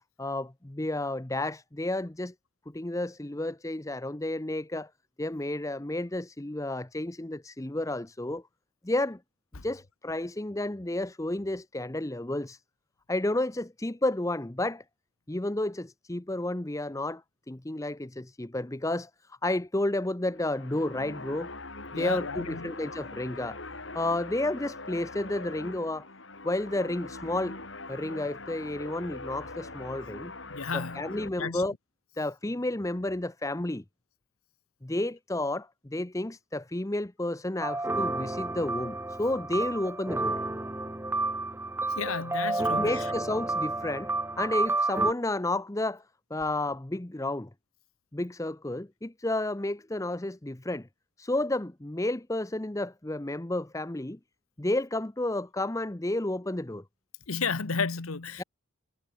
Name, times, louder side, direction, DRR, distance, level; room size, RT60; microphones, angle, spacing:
voice 1, 0.2-2.3 2.7-4.9 5.2-8.4 8.8-9.2 9.6-12.6 13.1-14.8 15.3-17.2 17.5-21.5 21.9-23.6 23.9-26.0 26.4-27.6 27.9-30.3 30.7-31.7 32.2-33.8 34.8-40.4 42.6-46.0 46.3-47.5 48.1-50.9 51.2-54.2 54.6-56.8 58.4-58.5, left 1 dB, 15° left, 0.7 m, -31 dB
sound 1, 20.2-31.3, left 2 dB, 60° left, 7.1 m, -42 dB
voice 2, 21.9-22.7 30.5-31.1 31.4-31.6 42.0-42.9 57.3-58.4, left 5 dB, 85° left, 1.2 m, -32 dB
sound 2, 37.6-45.1, right 2 dB, 10° right, 1.3 m, -30 dB
head